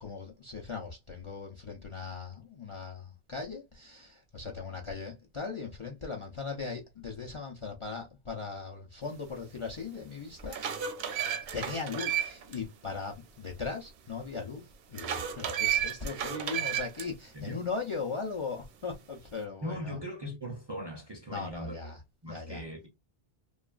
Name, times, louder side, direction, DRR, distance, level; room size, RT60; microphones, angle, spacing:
voice 1, 0.0-10.6 11.5-14.6 14.9-20.0 21.3-22.0 22.3-22.6, left 4 dB, 45° left, 0.4 m, -38 dB
sound 1, 9.6-9.7 10.2-12.6 12.9-13.0 14.9-17.1, right 10 dB, 75° right, 0.8 m, -32 dB
voice 2, 19.6-21.9 22.2-22.9, equal, 35° right, 0.4 m, -39 dB
2.9 x 2.3 x 2.3 m
omnidirectional pair, 1.0 m